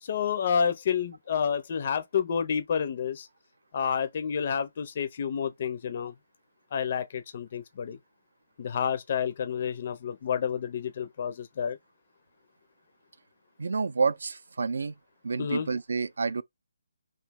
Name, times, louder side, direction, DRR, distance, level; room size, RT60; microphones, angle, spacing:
voice 1, 0.0-3.3 3.7-6.1 6.7-8.0 8.6-11.8 15.4-15.7, left 7 dB, 30° left, 0.4 m, -29 dB
voice 2, 13.6-14.9 15.2-16.4, right 4 dB, 70° right, 0.4 m, -29 dB
3.0 x 2.6 x 3.5 m
hypercardioid pair, 175°, 0 cm